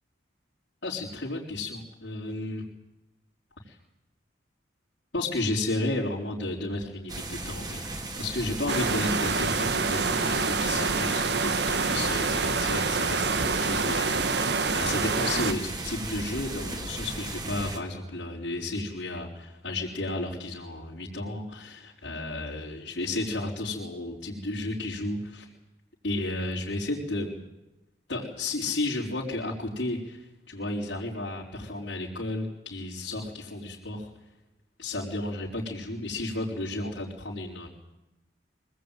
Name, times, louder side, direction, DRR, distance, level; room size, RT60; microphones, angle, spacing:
voice 1, 0.8-2.6 3.7-3.8 5.1-25.5 26.0-27.3 28.1-30.2 30.5-34.1 34.8-37.7, left 2 dB, 70° left, -6 dB, 4.9 m, -33 dB
sound 1, 7.1-17.8, right 2 dB, 20° right, 2.4 m, -36 dB
sound 2, 8.7-15.5, right 4 dB, 60° right, 1.4 m, -27 dB
25.0 x 19.5 x 9.4 m, 0.95 s
head